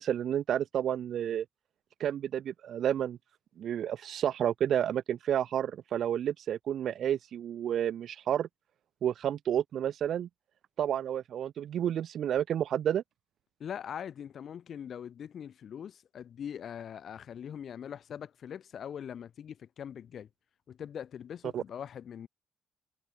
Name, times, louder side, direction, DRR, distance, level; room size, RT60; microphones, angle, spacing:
voice 1, 0.0-1.4 2.0-3.2 3.6-8.5 9.0-10.3 10.8-13.0 21.5-21.6, right 10 dB, 60° right, 1.2 m, -30 dB
voice 2, 13.6-20.3 20.7-22.3, left 8 dB, 50° left, 5.0 m, -42 dB
cardioid pair, 150°, 0 cm